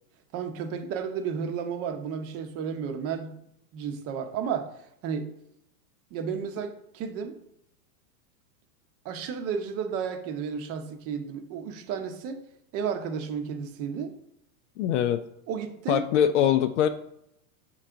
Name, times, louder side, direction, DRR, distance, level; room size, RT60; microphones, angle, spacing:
voice 1, 0.3-3.3 3.7-4.7 5.0-5.3 6.1-7.4 9.0-12.4 12.7-14.1 15.5-16.0, right 7 dB, 30° right, 7 dB, 0.8 m, -32 dB
voice 2, 14.8-15.2 15.9-16.9, left 10 dB, 50° left, 9 dB, 0.5 m, -23 dB
7.3 x 3.9 x 4.5 m, 0.76 s
supercardioid pair, 140°, 46 cm